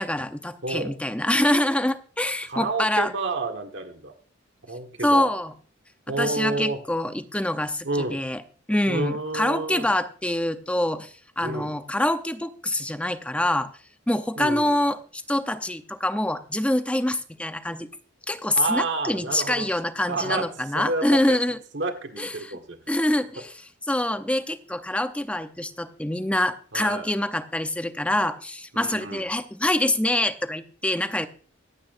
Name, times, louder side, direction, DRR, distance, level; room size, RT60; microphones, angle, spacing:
voice 1, 0.0-3.1 5.0-5.5 6.2-8.4 8.7-13.7 14.1-17.9 18.3-21.6 22.2-22.5 22.9-23.5 23.9-31.3, left 1 dB, 5° left, 9 dB, 0.7 m, -25 dB
voice 2, 0.6-0.9 2.5-4.1 4.6-5.3 6.1-6.8 7.8-8.2 8.9-9.9 11.4-11.7 14.4-14.8 18.6-19.7 20.1-20.5 20.7-21.4 21.7-22.8 26.7-27.1 28.7-29.2, right 2 dB, 65° right, 5 dB, 1.6 m, -29 dB
24.0 x 8.5 x 2.6 m, 0.42 s
head